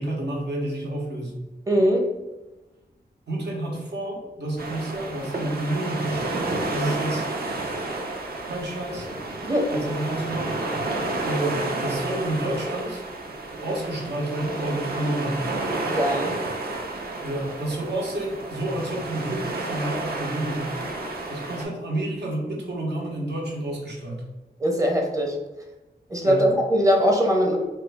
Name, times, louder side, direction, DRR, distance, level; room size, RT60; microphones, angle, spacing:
voice 1, 0.0-1.4 3.3-7.3 8.5-9.1 9.7-10.5 11.2-13.0 13.6-15.5 17.2-20.8 21.3-24.3 26.2-26.5, right 1 dB, 80° right, -2 dB, 0.9 m, -29 dB
voice 2, 1.7-2.1 9.5-9.7 15.9-16.4 24.6-25.4 26.1-27.6, equal, 20° right, 1 dB, 0.6 m, -21 dB
sound 1, 4.6-21.7, right 2 dB, 65° right, 0.6 m, -31 dB
3.2 x 2.3 x 3.3 m, 1.1 s
wide cardioid pair, 85°, 17 cm